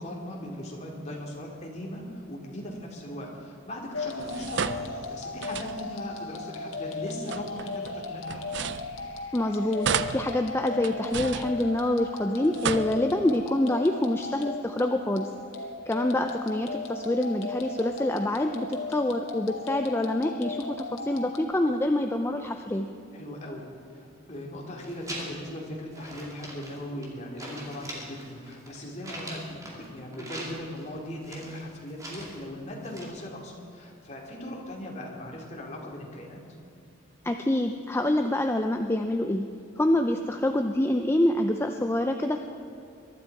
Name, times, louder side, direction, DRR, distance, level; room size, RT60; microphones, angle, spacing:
voice 1, 0.0-8.6 23.1-36.4, left 1 dB, 35° left, -1 dB, 2.6 m, -39 dB
sound 1, 3.9-21.4, left 3 dB, 85° left, 1.7 m, -37 dB
sound 2, 4.2-6.1 7.0-9.4 9.8-12.1 12.4-13.4, right 7 dB, 60° right, 0.5 m, -34 dB
voice 2, 9.3-15.3 15.9-22.9 37.2-39.5 39.8-42.4, left 1 dB, 10° left, 5 dB, 0.5 m, -26 dB
sound 3, 24.8-25.6 25.9-27.1 27.4-29.8 30.1-30.9 31.2-32.5 32.8-33.0, right 1 dB, 15° right, 2.6 m, -41 dB
23.0 x 12.0 x 4.7 m, 2.6 s
head